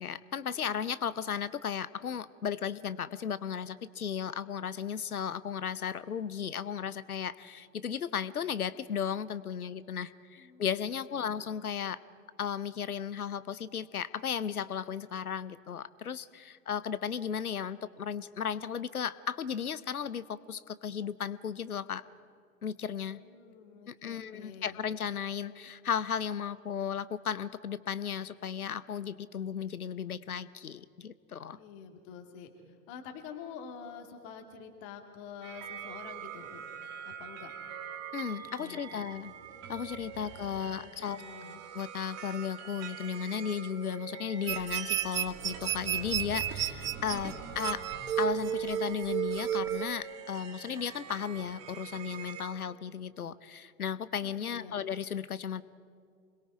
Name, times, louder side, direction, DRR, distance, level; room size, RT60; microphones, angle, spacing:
voice 1, 0.0-12.0 12.4-22.0 22.6-23.2 23.9-31.6 38.1-39.3 39.7-41.2 41.7-47.8 48.2-55.6, left 8 dB, 80° left, 17 dB, 0.8 m, -35 dB
voice 2, 10.4-11.3 23.1-24.8 31.5-32.5 32.9-36.6 37.0-37.6 38.6-39.0 40.2-41.6 54.2-54.8, left 7 dB, 45° left, 5 dB, 2.3 m, -48 dB
sound 1, 35.4-52.6, right 7 dB, 35° right, 2.3 m, -44 dB
sound 2, 44.5-49.9, right 11 dB, 70° right, 0.7 m, -32 dB
27.0 x 21.5 x 4.8 m, 2.3 s
figure-of-eight pair, 85°, 43 cm